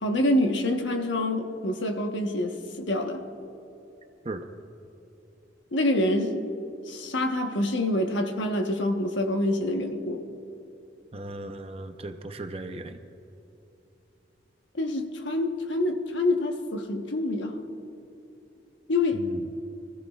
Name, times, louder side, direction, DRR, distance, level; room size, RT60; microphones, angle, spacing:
voice 1, 0.0-3.2 5.7-6.4 6.9-10.2 14.8-17.6 18.9-19.2, left 1 dB, 85° left, 4 dB, 1.2 m, -26 dB
voice 2, 11.1-13.0 19.1-19.5, right 2 dB, 30° right, 7 dB, 0.7 m, -37 dB
23.5 x 15.0 x 2.4 m, 2.9 s
head